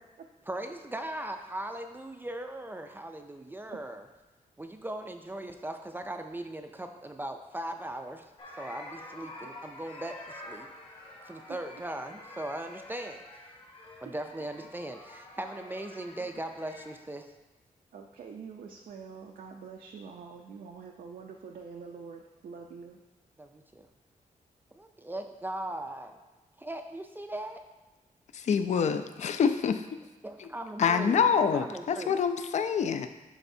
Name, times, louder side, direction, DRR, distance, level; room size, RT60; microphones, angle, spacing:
voice 1, 0.5-4.0 4.6-8.3 8.6-10.7 11.2-13.2 14.0-17.3 23.4-23.9 24.7-26.2 26.6-27.6 30.2-31.3 31.7-32.2, right 1 dB, 15° right, 5 dB, 0.3 m, -39 dB
sound 1, 8.4-16.9, left 1 dB, 40° left, 1.1 m, -48 dB
voice 2, 17.9-23.0, right 5 dB, 75° right, 2 dB, 0.5 m, -45 dB
voice 3, 28.3-30.0 30.4-30.5 30.8-33.1, left 6 dB, 55° left, 9 dB, 0.4 m, -26 dB
11.0 x 4.1 x 2.7 m, 1.2 s
wide cardioid pair, 170°, 14 cm